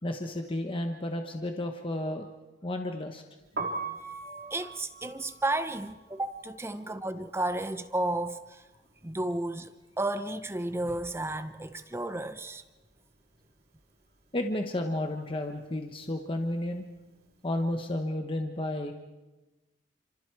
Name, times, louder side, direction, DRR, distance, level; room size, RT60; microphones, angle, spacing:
voice 1, 0.0-2.3 2.6-3.2 4.1-4.2 14.3-16.9 17.4-18.9, left 1 dB, 30° left, 1.2 m, -32 dB
Piano, 3.4-9.4 9.6-11.2 11.5-17.9, right 3 dB, 55° right, 2.8 m, -42 dB
voice 2, 4.2-8.6 9.0-9.7 10.0-12.6, right 2 dB, 15° right, 0.7 m, -33 dB
29.0 x 26.5 x 4.7 m
head